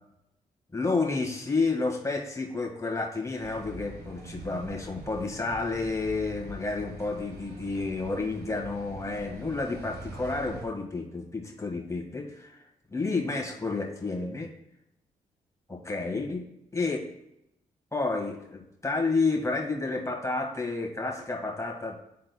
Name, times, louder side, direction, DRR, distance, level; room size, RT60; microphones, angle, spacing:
voice 1, 0.7-12.6 12.9-14.5 15.7-16.4 16.7-17.0 17.9-22.0, left 3 dB, 15° left, 0 dB, 1.6 m, -30 dB
sound 1, 3.4-10.7, right 2 dB, 65° right, 1.3 m, -44 dB
11.0 x 3.8 x 2.2 m, 0.83 s
hypercardioid pair, 40°, 17 cm